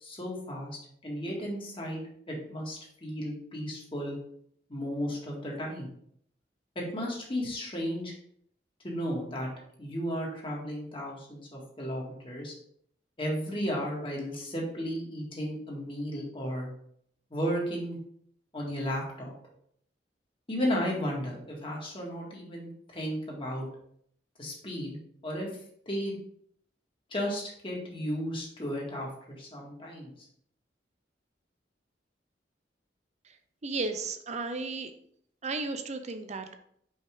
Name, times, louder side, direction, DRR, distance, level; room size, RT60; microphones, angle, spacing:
voice 1, 0.0-2.0 2.3-4.2 4.7-5.9 6.9-8.1 8.8-9.5 9.8-12.6 13.2-16.7 17.3-18.0 18.5-19.3 20.5-23.7 24.4-25.0 25.2-25.5 25.9-26.1 27.1-30.1, equal, 30° left, -2 dB, 1.8 m, -34 dB
voice 2, 33.6-34.9 35.4-36.5, right 3 dB, 40° right, 8 dB, 0.6 m, -34 dB
5.4 x 5.1 x 3.5 m, 0.66 s
head